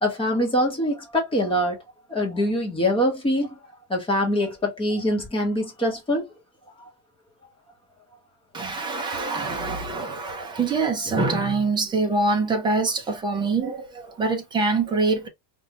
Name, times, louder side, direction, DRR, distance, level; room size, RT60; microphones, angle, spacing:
voice 1, 0.0-1.8 2.1-3.5 3.9-6.3 6.8-6.9 10.4-10.5, equal, 10° left, 1.2 m, -24 dB
voice 2, 8.5-15.3, right 3 dB, 10° right, 0.3 m, -24 dB
5.1 x 2.6 x 2.9 m
cardioid pair, 180°, 47 cm